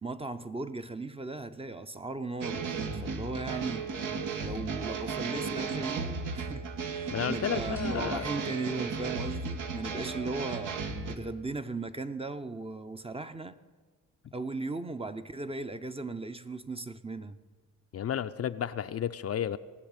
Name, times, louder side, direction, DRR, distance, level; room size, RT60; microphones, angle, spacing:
voice 1, 0.0-3.9 4.4-10.8 11.1-13.5 14.3-17.4, right 3 dB, 15° right, 9 dB, 0.8 m, -37 dB
sound 1, 2.4-11.2, right 5 dB, 70° right, 1.4 m, -35 dB
voice 2, 7.1-8.3 17.9-19.6, left 9 dB, 45° left, 10 dB, 0.6 m, -32 dB
sound 2, 7.8-9.6, left 5 dB, 50° right, 5.2 m, -50 dB
18.5 x 7.3 x 8.9 m, 1.5 s
cardioid pair, 75°, 33 cm